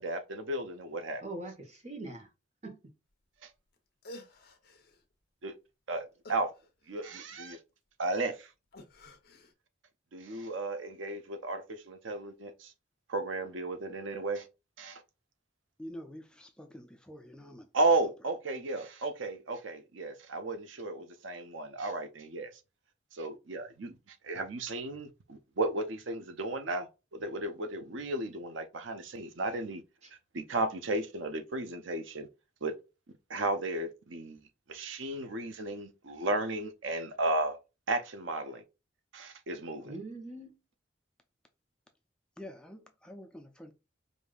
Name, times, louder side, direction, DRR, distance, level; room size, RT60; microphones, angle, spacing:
voice 1, 0.0-1.2 3.4-3.5 5.4-5.5 5.9-6.5 6.9-7.6 8.0-8.5 10.1-12.7 13.1-14.5 14.8-15.0 17.7-22.5 23.1-29.8 30.3-32.3 32.6-32.8 33.3-34.4 34.7-37.6 37.9-38.6 39.1-39.9, right 2 dB, 85° right, 0.6 m, -34 dB
voice 2, 1.2-2.3 2.6-2.8 30.0-30.1 39.8-40.6, right 2 dB, 35° right, 1.1 m, -42 dB
sound 1, 3.7-3.8 4.0-5.0 6.2-7.3 8.7-9.5, left 1 dB, 50° left, 0.8 m, -51 dB
voice 3, 15.8-17.7 42.4-43.7, equal, 5° left, 0.4 m, -47 dB
5.0 x 2.6 x 2.3 m
head